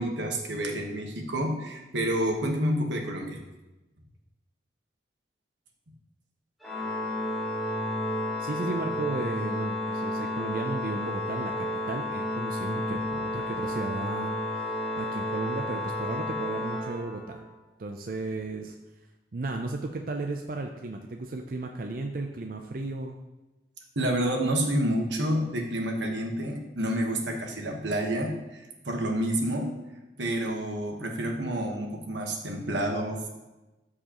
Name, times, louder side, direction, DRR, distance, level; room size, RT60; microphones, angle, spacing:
voice 1, 0.0-3.4 23.9-29.7 30.2-33.3, right 1 dB, 90° right, 2 dB, 1.3 m, -29 dB
Organ, 6.6-17.5, left 1 dB, ahead, 1.5 m, -31 dB
voice 2, 8.4-17.4 17.8-18.7 19.3-23.2, right 2 dB, 50° right, 4 dB, 0.5 m, -35 dB
13.0 x 4.9 x 3.0 m, 1.0 s
head